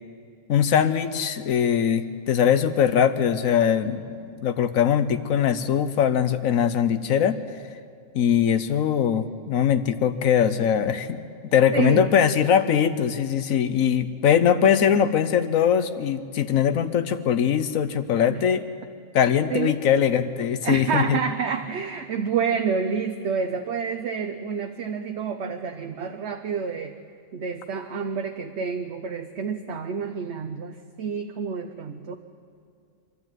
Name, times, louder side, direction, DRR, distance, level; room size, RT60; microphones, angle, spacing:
voice 1, 0.5-7.4 8.1-11.2 11.5-18.6 19.1-21.2, left 8 dB, 90° left, 10 dB, 1.3 m, -21 dB
voice 2, 11.7-12.1 18.3-18.4 19.5-19.8 20.6-27.0 27.3-32.2, right 6 dB, 60° right, 5 dB, 1.1 m, -28 dB
24.0 x 12.5 x 9.1 m, 2.4 s
omnidirectional pair, 1.4 m